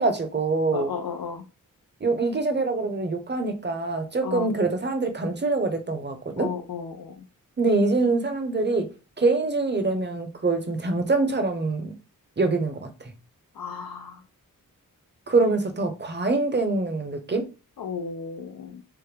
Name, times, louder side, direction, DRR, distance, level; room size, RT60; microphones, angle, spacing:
voice 1, 0.0-0.9 2.0-6.5 7.6-11.9 12.4-13.1 15.3-17.5, right 3 dB, 30° right, 0.8 m, -25 dB
voice 2, 0.7-1.4 4.2-4.5 6.4-7.2 13.6-14.2 17.8-18.8, left 6 dB, 75° left, 0.6 m, -34 dB
3.5 x 2.1 x 3.2 m
cardioid pair, 55°, 35 cm